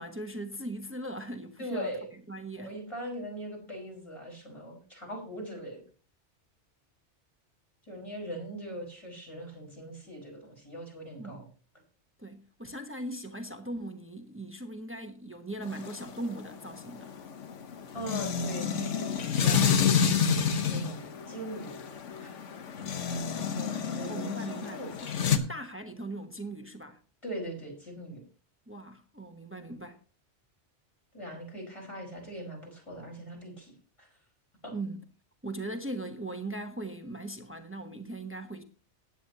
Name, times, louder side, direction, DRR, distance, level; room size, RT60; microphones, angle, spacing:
voice 1, 0.0-1.9 2.3-2.7 11.2-11.4 12.2-17.1 23.7-27.0 28.7-30.0 34.7-35.0 35.4-38.6, right 1 dB, 10° right, 0.9 m, -39 dB
voice 2, 1.6-2.1 2.6-5.8 7.8-11.5 17.9-19.9 20.3-21.8 22.2-22.4 23.0-25.5 27.2-28.2 31.1-33.7 34.0-34.1 34.6-34.7, equal, 25° left, 4.9 m, -41 dB
sound 1, 15.6-25.4, left 7 dB, 85° left, 1.3 m, -29 dB
15.5 x 9.8 x 2.8 m
omnidirectional pair, 1.2 m